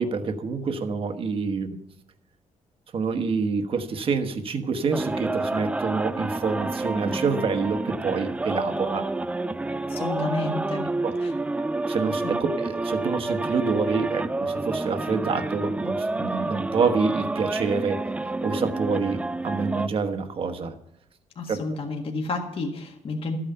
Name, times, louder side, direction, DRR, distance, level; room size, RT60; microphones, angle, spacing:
voice 1, 0.0-1.8 2.9-9.1 11.0-11.1 11.9-18.0 18.4-20.7 21.5-21.6, right 5 dB, 40° right, 8 dB, 1.2 m, -27 dB
sound 1, 4.9-19.9, right 2 dB, 10° right, 0.3 m, -29 dB
voice 2, 9.9-10.9 11.2-11.3 12.2-12.3 21.4-23.4, left 3 dB, 40° left, 2 dB, 1.6 m, -30 dB
13.5 x 8.9 x 5.6 m, 0.79 s
cardioid pair, 160°, 14 cm